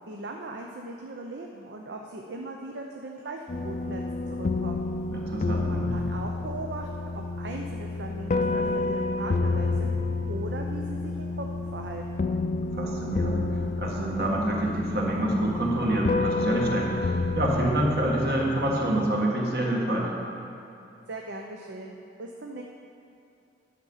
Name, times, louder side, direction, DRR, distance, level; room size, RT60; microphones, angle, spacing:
voice 1, 0.1-4.0 4.3-4.9 5.7-9.9 10.3-12.3 21.1-22.6, right 2 dB, 85° right, 1 dB, 0.6 m, -39 dB
sound 1, 3.5-18.9, left 3 dB, 45° left, 0.4 m, -29 dB
voice 2, 5.1-5.9 12.7-20.1, right 1 dB, 60° right, -2 dB, 1.6 m, -27 dB
10.5 x 6.7 x 5.6 m, 2.6 s
head